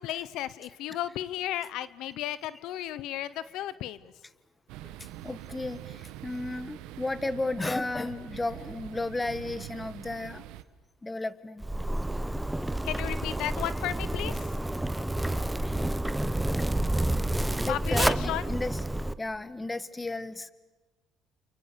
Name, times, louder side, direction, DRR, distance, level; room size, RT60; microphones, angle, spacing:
voice 1, 0.0-4.0 12.8-14.4 17.7-18.4, left 13 dB, 75° left, 16 dB, 0.9 m, -34 dB
sound 1, 4.7-10.6, right 13 dB, 85° right, 1.2 m, -44 dB
voice 2, 4.8-10.4 11.0-11.6 15.9-16.0 17.6-18.8 19.2-20.5, left 2 dB, 15° left, 14 dB, 1.4 m, -34 dB
Zipper (clothing), 11.6-19.1, right 1 dB, 5° right, 0.9 m, -29 dB
29.5 x 28.5 x 6.9 m, 1.2 s
cardioid pair, 100°, 0 cm